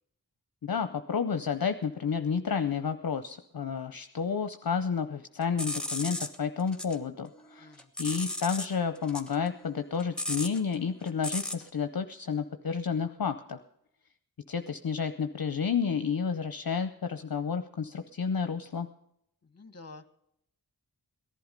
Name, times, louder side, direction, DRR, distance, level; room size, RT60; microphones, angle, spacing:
voice 1, 0.6-7.7 8.0-13.6 14.5-18.9, left 6 dB, 60° left, 8 dB, 0.7 m, -31 dB
sound 1, 5.4-7.0 7.3-8.7 9.0-11.7, left 1 dB, ahead, 1.4 m, -36 dB
voice 2, 7.6-7.9 19.4-20.1, left 3 dB, 40° left, 11 dB, 1.3 m, -49 dB
17.5 x 11.5 x 5.2 m, 0.77 s
wide cardioid pair, 45°, 39 cm